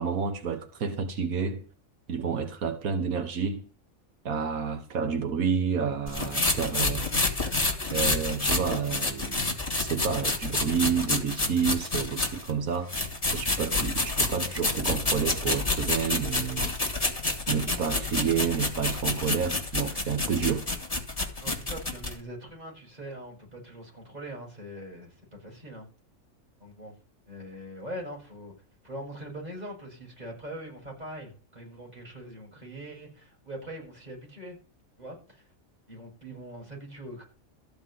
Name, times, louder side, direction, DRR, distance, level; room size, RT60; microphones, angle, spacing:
voice 1, 0.0-1.6 2.1-3.6 4.3-7.2 7.9-9.5 9.7-12.9 13.3-16.8 17.5-20.7, right 6 dB, 85° right, 1.8 m, -29 dB
sound 1, 6.1-12.5 12.9-22.1, left 2 dB, 25° left, 2.3 m, -29 dB
voice 2, 21.4-25.9 26.6-26.9 27.3-28.5 28.8-34.6 35.0-35.5 35.9-37.2, right 1 dB, 30° right, 7.0 m, -42 dB
14.0 x 5.2 x 9.4 m
omnidirectional pair, 1.4 m